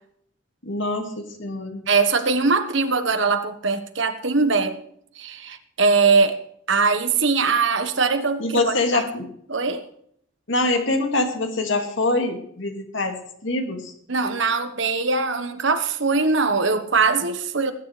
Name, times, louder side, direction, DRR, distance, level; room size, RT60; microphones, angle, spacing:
voice 1, 0.6-1.9 8.4-9.3 10.5-13.9, left 2 dB, 65° left, 2.2 m, -24 dB
voice 2, 1.9-4.8 5.2-6.4 6.7-9.0 9.5-9.8 14.1-17.7, right 4 dB, 65° right, 1.3 m, -21 dB
19.5 x 10.0 x 3.3 m
head